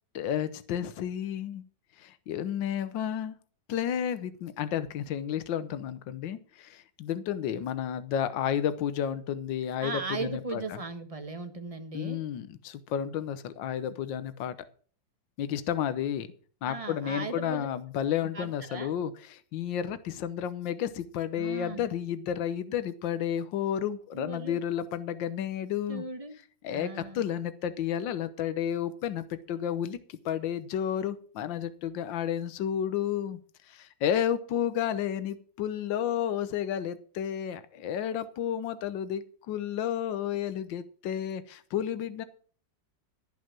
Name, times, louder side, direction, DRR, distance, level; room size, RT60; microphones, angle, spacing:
voice 1, 0.1-1.6 2.0-3.3 3.7-10.6 11.9-14.5 15.4-16.3 16.6-26.0 26.6-33.4 33.7-42.2, left 9 dB, 80° left, 13 dB, 1.6 m, -31 dB
voice 2, 9.8-12.2 16.7-17.7 18.3-18.9 21.4-21.9 24.1-24.6 25.9-26.4 26.7-27.3, right 3 dB, 20° right, 8 dB, 1.2 m, -37 dB
15.5 x 5.8 x 7.5 m, 0.44 s
omnidirectional pair, 2.0 m